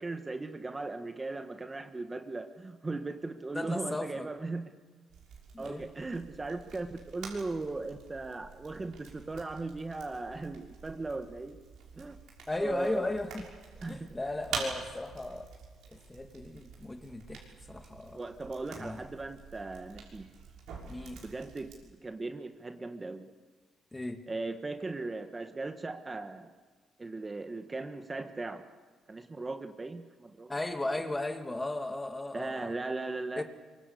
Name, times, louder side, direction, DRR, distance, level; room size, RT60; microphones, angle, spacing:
voice 1, 0.0-4.7 5.6-11.6 11.9-12.2 12.6-13.1 13.8-14.0 18.1-20.3 21.2-23.3 24.3-26.5 27.0-28.6 29.1-30.5 32.3-33.4, right 3 dB, 25° right, 7 dB, 1.5 m, -38 dB
voice 2, 3.5-4.3 5.5-5.9 12.5-13.4 13.8-15.5 15.9-18.2 18.7-19.0 20.9-21.2 23.9-24.2 30.5-32.7 33.4-33.5, left 2 dB, 15° left, 7 dB, 2.4 m, -36 dB
sound 1, 5.1-21.8, right 5 dB, 80° right, 6.2 m, -46 dB
24.0 x 23.0 x 8.5 m, 1.4 s
cardioid pair, 90°, 0 cm